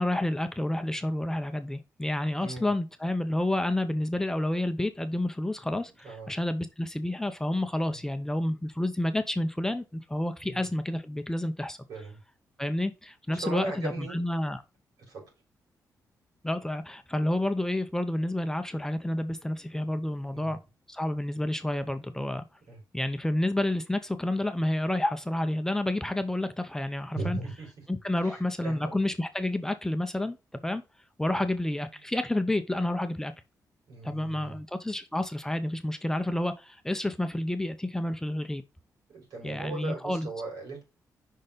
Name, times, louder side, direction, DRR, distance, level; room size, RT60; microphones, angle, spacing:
voice 1, 0.0-11.8 12.6-14.6 16.4-20.6 20.9-22.4 22.9-27.4 27.9-30.4 30.6-30.8 31.2-33.3 34.0-38.6 39.4-40.3, left 1 dB, 10° left, 0.6 m, -29 dB
voice 2, 2.4-2.7 6.0-6.3 7.9-8.0 10.4-10.7 11.9-12.2 13.3-14.2 15.1-15.3 20.3-20.6 22.7-22.8 27.1-27.7 28.2-29.0 31.3-31.4 33.9-34.6 39.1-40.8, right 3 dB, 80° right, 4.4 m, -38 dB
5.5 x 4.1 x 5.0 m
cardioid pair, 110°, 7 cm